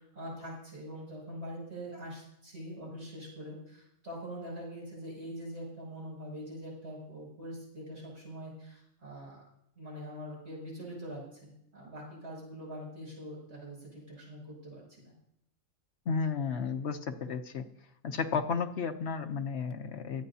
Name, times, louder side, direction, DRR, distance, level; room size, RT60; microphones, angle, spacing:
voice 1, 0.0-9.4 9.8-14.8, equal, 50° right, -5 dB, 6.9 m, -43 dB
voice 2, 16.1-17.6 18.0-20.3, left 5 dB, 55° left, 6 dB, 1.0 m, -33 dB
23.5 x 9.1 x 2.8 m, 0.75 s
omnidirectional pair, 1.4 m